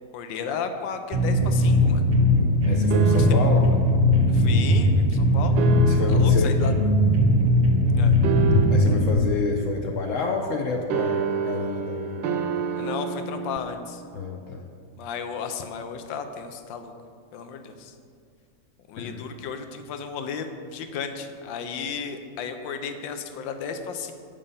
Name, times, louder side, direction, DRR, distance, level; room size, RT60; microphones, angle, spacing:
voice 1, 0.1-2.0 3.1-3.3 4.3-5.7 6.1-6.8 7.9-8.1 12.7-14.0 15.0-16.9 17.3-17.9 18.9-24.1, left 6 dB, 90° left, 7 dB, 1.4 m, -34 dB
sound 1, 1.1-9.1, left 1 dB, 60° right, 0.4 m, -19 dB
voice 2, 2.7-3.7 5.8-6.6 8.7-12.3 14.1-14.7 19.0-19.3, left 4 dB, 70° left, 3 dB, 0.8 m, -28 dB
sound 2, 2.9-3.7 5.6-6.4 8.2-9.1 10.9-13.6, right 5 dB, 75° right, 1.2 m, -28 dB
8.6 x 5.4 x 5.5 m, 2.2 s
omnidirectional pair, 2.0 m